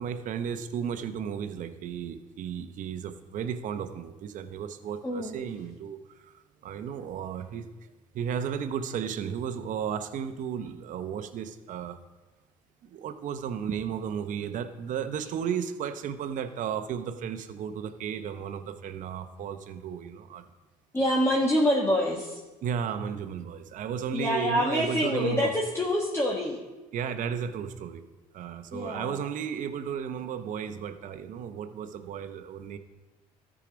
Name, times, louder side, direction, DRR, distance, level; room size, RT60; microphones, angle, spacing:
voice 1, 0.0-6.0 6.2-6.3 6.6-7.7 8.1-12.0 12.8-20.4 22.6-25.5 26.9-28.0 28.3-32.8, right 8 dB, 55° right, 9 dB, 0.8 m, -34 dB
voice 2, 5.0-5.4 20.9-22.4 24.1-26.6 28.7-29.2, left 1 dB, 15° left, -3 dB, 1.5 m, -26 dB
13.0 x 4.9 x 5.1 m, 1.1 s
supercardioid pair, 85°, 15 cm